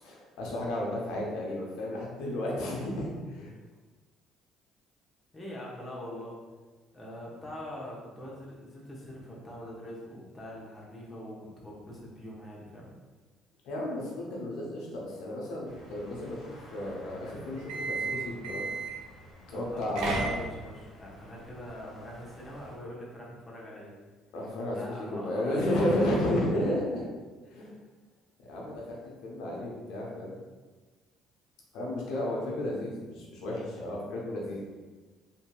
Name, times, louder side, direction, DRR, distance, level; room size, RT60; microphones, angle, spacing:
voice 1, 0.0-3.5 13.6-16.4 16.7-18.7 19.5-20.4 24.3-27.0 27.4-27.7 28.4-30.3 31.7-34.6, left 1 dB, 75° left, -3 dB, 0.7 m, -32 dB
voice 2, 5.3-6.4 6.9-12.9 19.5-23.9 24.7-26.2, equal, 20° left, -4 dB, 0.9 m, -43 dB
sound 1, 15.6-22.8, equal, 55° left, 1.2 m, -52 dB
sound 2, 17.6-19.1 19.7-20.8, right 3 dB, 80° right, 0.6 m, -33 dB
2.8 x 2.6 x 2.2 m, 1.3 s
supercardioid pair, 80°, 0 cm